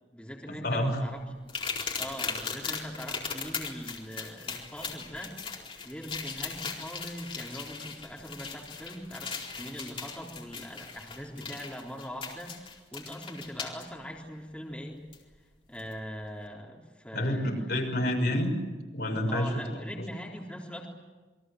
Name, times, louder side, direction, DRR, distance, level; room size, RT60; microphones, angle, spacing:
voice 1, 0.1-1.2 2.0-5.6 5.8-15.0 15.7-17.8 19.3-20.9, equal, 5° left, -2 dB, 3.9 m, -41 dB
voice 2, 0.6-1.0 17.1-18.5 18.9-19.8, left 1 dB, 60° left, 2 dB, 6.3 m, -28 dB
sound 1, 1.5-13.8 15.1-15.2 15.8-15.9, left 5 dB, 30° left, 4.2 m, -38 dB
28.5 x 23.0 x 8.0 m, 1.3 s
head